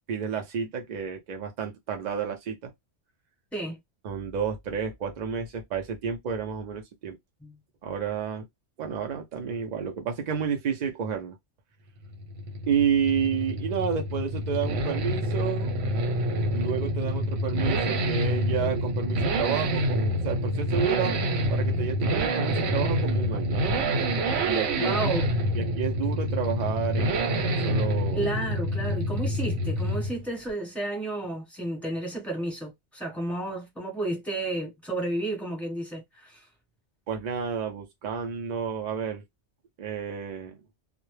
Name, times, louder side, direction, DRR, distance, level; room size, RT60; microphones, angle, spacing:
voice 1, 0.1-2.7 4.0-7.2 7.8-8.5 8.8-11.4 12.7-15.7 16.5-21.2 21.5-23.6 24.4-25.0 25.5-28.3 37.1-39.2 39.8-40.6, right 7 dB, 65° right, 0.4 m, -30 dB
Accelerating revving vroom, 12.1-30.2 30.5-30.6, equal, 85° right, 1.0 m, -27 dB
voice 2, 24.8-25.3 28.1-36.4, right 2 dB, ahead, 0.9 m, -32 dB
2.1 x 2.0 x 3.0 m
omnidirectional pair, 1.2 m